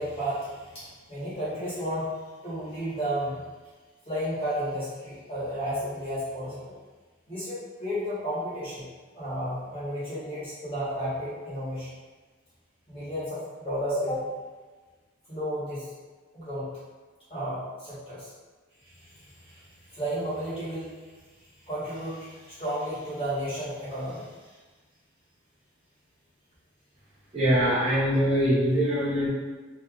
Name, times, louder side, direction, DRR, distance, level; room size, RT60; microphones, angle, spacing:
voice 1, 0.0-2.1 2.4-3.5 4.0-6.7 7.3-8.9 9.1-11.9 12.9-14.3 15.3-15.9 16.3-16.7 17.3-18.3 18.8-20.9 21.7-24.5, equal, 30° left, -11 dB, 1.4 m, -33 dB
voice 2, 27.3-29.3, equal, 35° right, -10 dB, 1.4 m, -23 dB
3.1 x 2.9 x 2.4 m, 1.3 s
head